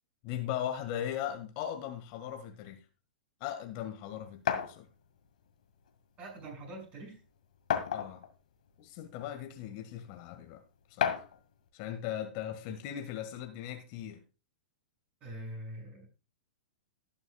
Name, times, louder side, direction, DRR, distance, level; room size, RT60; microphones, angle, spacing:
voice 1, 0.2-2.8 3.4-4.9 7.9-8.2 8.8-10.6 11.0-11.2 11.7-14.2, left 10 dB, 45° left, 1.7 m, -38 dB
sound 1, 4.5-4.7 5.9-6.0 6.4-6.5 7.7-8.3 9.2-9.3 11.0-11.4, left 8 dB, 65° left, 1.9 m, -30 dB
voice 2, 6.2-7.2 15.2-16.1, right 1 dB, 30° right, 6.4 m, -44 dB
19.0 x 6.6 x 2.3 m
hypercardioid pair, 110°, 5 cm